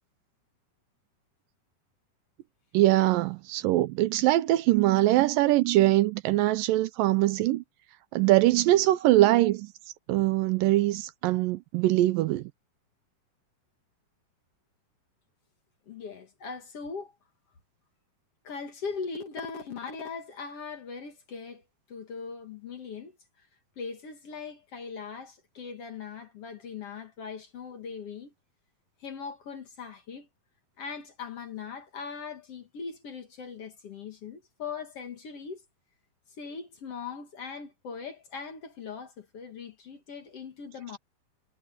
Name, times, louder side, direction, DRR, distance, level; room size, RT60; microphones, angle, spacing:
voice 1, 2.7-7.6 8.1-9.7 10.1-12.4, right 16 dB, 80° right, 2.2 m, -22 dB
voice 2, 15.9-17.1 18.4-23.5 23.8-28.3 29.0-30.3 30.8-35.6 36.4-41.0, left 5 dB, 50° left, 2.3 m, -40 dB
omnidirectional pair, 4.2 m